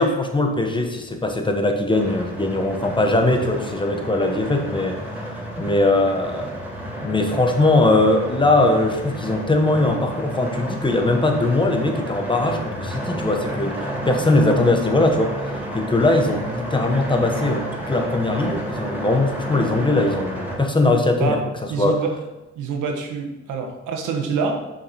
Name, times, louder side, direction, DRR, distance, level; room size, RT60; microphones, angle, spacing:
voice 1, 0.0-5.0 5.6-6.5 7.0-15.3 15.7-21.4 21.8-22.0, left 2 dB, 15° left, 4 dB, 1.1 m, -20 dB
sound 1, 1.9-20.6, right 1 dB, 5° right, 2.5 m, -31 dB
voice 2, 21.7-22.1 22.5-24.6, right 5 dB, 80° right, 3 dB, 1.3 m, -26 dB
6.5 x 5.6 x 4.2 m, 1.0 s
cardioid pair, 90°, 30 cm